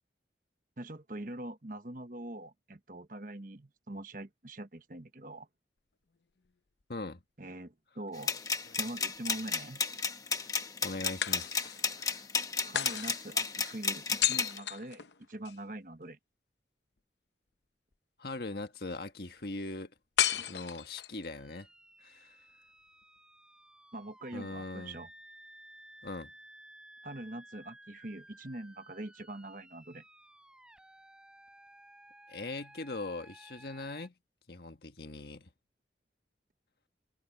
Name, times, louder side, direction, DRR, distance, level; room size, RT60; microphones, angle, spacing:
voice 1, 0.8-5.5 7.4-8.3 8.8-9.8 12.6-16.2 23.9-25.1 27.0-30.0, right 1 dB, 50° right, 1.2 m, -43 dB
voice 2, 6.9-7.2 10.8-12.2 18.2-19.9 20.5-21.7 22.0-22.4 24.3-25.0 26.0-26.3 32.3-34.1 34.5-35.5, left 2 dB, 65° left, 1.5 m, -41 dB
sound 1, 8.1-9.2 11.2-12.0 12.7-15.6 20.2-21.3, left 10 dB, 85° left, 0.7 m, -34 dB
sound 2, 8.2-14.6, left 5 dB, 20° left, 1.0 m, -33 dB
sound 3, 21.3-34.1, right 1 dB, 5° right, 7.6 m, -56 dB
head